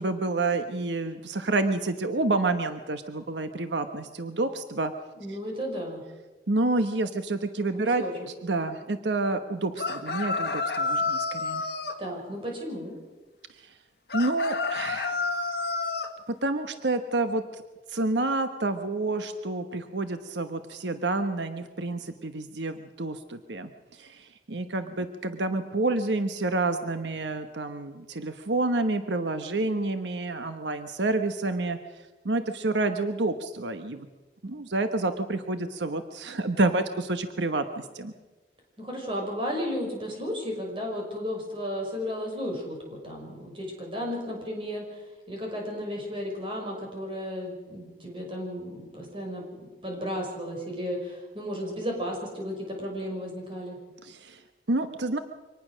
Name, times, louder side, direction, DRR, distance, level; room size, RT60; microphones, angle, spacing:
voice 1, 0.0-4.9 5.3-5.4 6.5-8.0 8.4-11.6 14.1-15.2 16.4-17.6 17.9-23.7 24.0-31.8 32.2-34.1 34.4-38.1 54.0-54.4 54.7-55.2, right 2 dB, 85° right, 8 dB, 1.2 m, -28 dB
voice 2, 5.2-6.0 7.7-8.1 12.0-12.9 38.8-45.0 45.3-53.8, equal, 30° right, 0 dB, 5.8 m, -34 dB
sound 1, 9.8-12.0 14.1-16.1, left 3 dB, 65° left, 1.7 m, -29 dB
25.0 x 19.0 x 6.3 m, 1.2 s
head